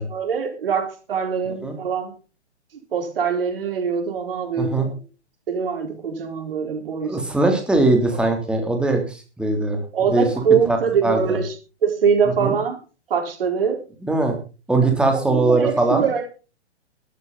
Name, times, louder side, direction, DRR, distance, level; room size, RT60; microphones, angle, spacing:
voice 1, 0.0-2.1 2.9-4.9 5.5-7.2 9.9-11.5 11.8-12.8 13.1-13.8 14.8-14.9 15.3-16.3, right 6 dB, 55° right, 4 dB, 4.4 m, -23 dB
voice 2, 7.0-9.8 10.1-10.3 10.7-11.4 12.4-12.5 14.0-14.3 14.7-16.0, right 2 dB, 5° right, 3 dB, 3.2 m, -20 dB
16.0 x 13.0 x 4.1 m, 0.35 s
figure-of-eight pair, 125°, 34 cm